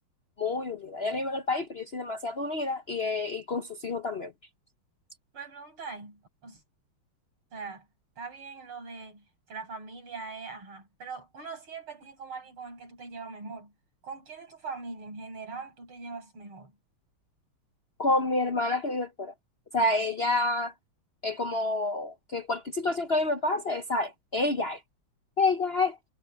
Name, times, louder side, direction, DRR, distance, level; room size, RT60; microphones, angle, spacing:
voice 1, 0.4-4.3 18.0-19.3 19.7-20.7 21.2-24.8 25.4-26.0, left 2 dB, 45° left, 0.8 m, -28 dB
voice 2, 5.3-6.6 7.5-7.9 8.2-13.7 14.0-16.7, right 4 dB, 85° right, 7.2 m, -42 dB
omnidirectional pair, 2.3 m